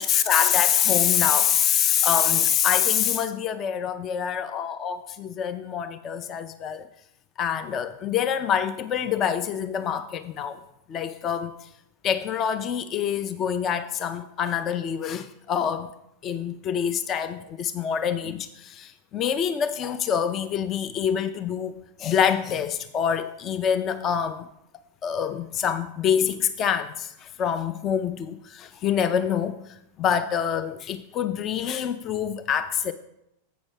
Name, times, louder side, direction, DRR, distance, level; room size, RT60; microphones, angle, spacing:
voice 1, 0.0-6.9 7.4-10.6 10.9-11.7 12.0-15.9 16.2-21.7 22.0-24.5 25.0-32.9, left 8 dB, 30° left, 0.4 m, -25 dB
7.9 x 6.1 x 4.9 m
figure-of-eight pair, 90°, 0 cm